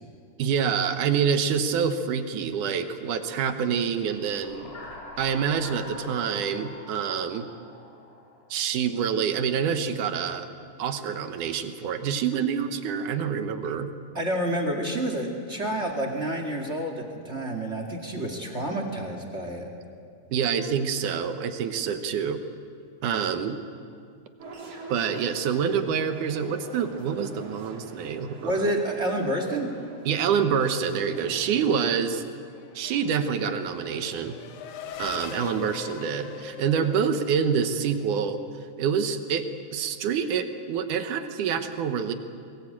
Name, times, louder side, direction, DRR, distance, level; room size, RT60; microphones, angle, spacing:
voice 1, 0.4-4.7 5.2-7.5 8.5-10.5 10.8-13.9 20.3-22.4 23.0-23.6 24.9-28.7 30.1-32.2 32.8-34.4 35.0-38.4 38.8-42.1, right 7 dB, 70° right, 8 dB, 2.5 m, -27 dB
sound 1, 4.0-8.6, left 1 dB, 65° left, 4.0 m, -43 dB
voice 2, 14.1-19.7 28.4-29.7, right 1 dB, 25° right, 3 dB, 1.8 m, -29 dB
sound 2, 24.4-31.7, right 2 dB, 45° right, 4.2 m, -45 dB
Race car auto racing / Accelerating revving vroom, 32.2-38.1, left 6 dB, 85° left, 3.0 m, -42 dB
22.5 x 21.5 x 8.7 m, 2.3 s
omnidirectional pair, 3.9 m